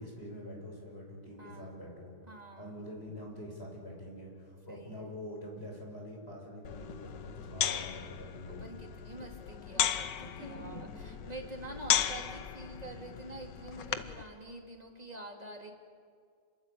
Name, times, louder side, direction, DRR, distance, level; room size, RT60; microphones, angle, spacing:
voice 1, 0.0-2.1 2.6-8.7 10.2-10.9 11.2-11.4, left 1 dB, 35° left, 0 dB, 6.7 m, -45 dB
voice 2, 1.4-1.8 2.3-2.8 4.7-5.1 7.4-7.6 8.4-15.7, right 2 dB, 20° right, 1 dB, 3.4 m, -47 dB
sound 1, 6.6-14.2, left 9 dB, 80° left, 1.6 m, -35 dB
28.5 x 21.0 x 8.7 m, 2.1 s
omnidirectional pair, 1.9 m